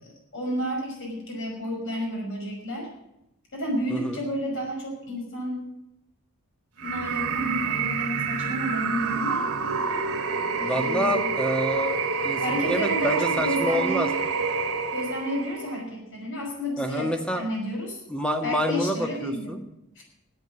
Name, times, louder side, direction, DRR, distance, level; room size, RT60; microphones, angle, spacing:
voice 1, 0.0-2.9 3.5-5.6 6.8-9.4 10.5-11.3 12.4-14.1 14.9-18.0 18.4-19.5, equal, 55° left, 0 dB, 5.7 m, -31 dB
voice 2, 3.9-4.2 10.6-12.0 12.2-14.1 16.8-17.4 18.1-19.6, equal, 5° left, 5 dB, 1.6 m, -27 dB
sound 1, 6.8-15.8, right 4 dB, 85° right, 2.2 m, -27 dB
13.5 x 9.6 x 8.2 m, 0.84 s
head